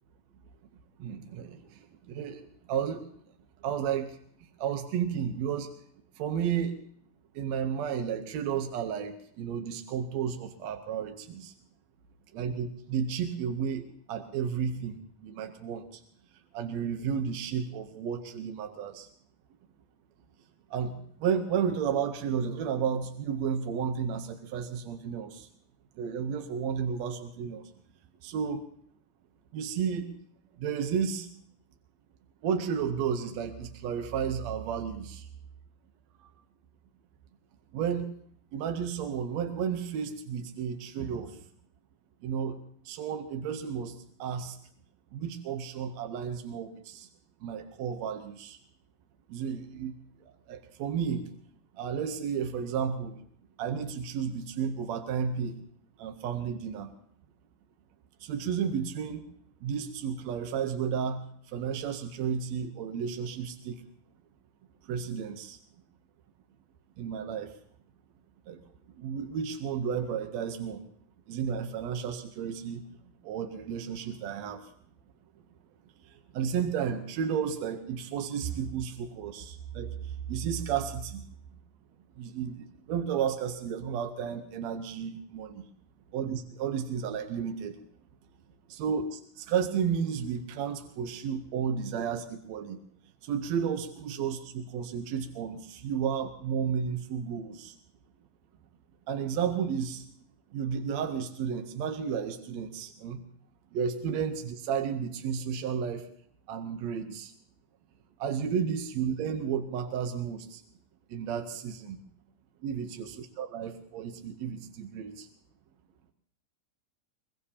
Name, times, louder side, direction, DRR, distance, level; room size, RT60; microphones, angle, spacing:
voice 1, 1.0-3.1 3.6-4.2 4.6-5.7 6.2-6.8 7.4-11.5 12.3-16.0 16.5-19.1 20.7-25.5 26.0-27.7 28.2-28.6 29.5-30.1 30.6-31.3 32.4-35.3 36.2-36.3 37.7-38.1 38.5-41.4 42.2-44.6 45.1-47.1 47.4-48.6 49.3-49.9 50.2-51.3 51.7-53.2 53.6-55.6 56.0-56.9 58.2-59.2 59.6-63.8 64.8-65.6 67.0-67.6 68.5-68.6 69.0-70.8 71.3-72.8 73.2-74.7 76.0-81.3 82.2-85.6 86.1-87.8 88.7-92.8 93.2-97.8 99.1-100.1 100.5-103.2 103.7-106.1 106.5-107.3 108.2-110.6 111.1-112.0 112.6-115.3, right 7 dB, 70° right, 6 dB, 1.8 m, -32 dB
22.5 x 22.0 x 2.8 m, 0.63 s
omnidirectional pair, 3.9 m